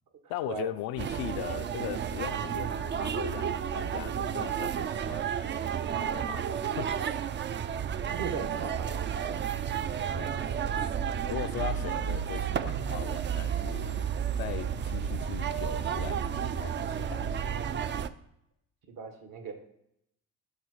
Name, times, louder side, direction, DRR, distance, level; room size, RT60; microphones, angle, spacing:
voice 1, 0.3-5.3 5.9-7.2 10.1-10.6 11.3-17.4, left 13 dB, 65° left, 0.5 m, -39 dB
sound 1, 1.0-18.1, right 8 dB, 30° right, 0.4 m, -32 dB
voice 2, 8.1-9.6 10.0-10.3 18.8-19.5, right 5 dB, 60° right, 1.5 m, -38 dB
7.3 x 3.7 x 4.9 m
supercardioid pair, 70°, 38 cm